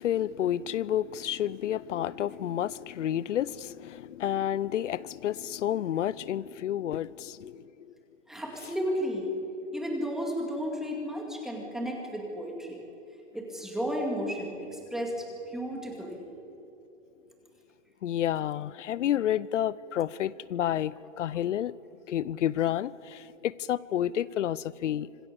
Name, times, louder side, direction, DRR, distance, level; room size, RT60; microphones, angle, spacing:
voice 1, 0.0-7.7 18.0-21.7 22.1-25.1, left 11 dB, 85° left, 0.7 m, -30 dB
voice 2, 8.3-9.3 9.7-12.8 13.3-16.2, equal, ahead, 2.3 m, -33 dB
26.0 x 21.0 x 7.1 m
hypercardioid pair, 170°, 36 cm